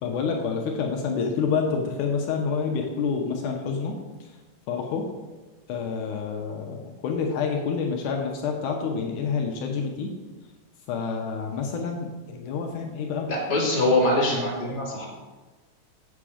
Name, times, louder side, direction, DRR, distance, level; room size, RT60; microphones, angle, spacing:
voice 1, 0.0-4.3 4.7-5.1 5.7-10.2 10.9-13.3, left 5 dB, 75° left, 2 dB, 2.2 m, -28 dB
voice 2, 13.3-15.0, left 1 dB, 15° left, -6 dB, 2.4 m, -23 dB
7.9 x 7.3 x 4.9 m, 1.3 s
omnidirectional pair, 3.7 m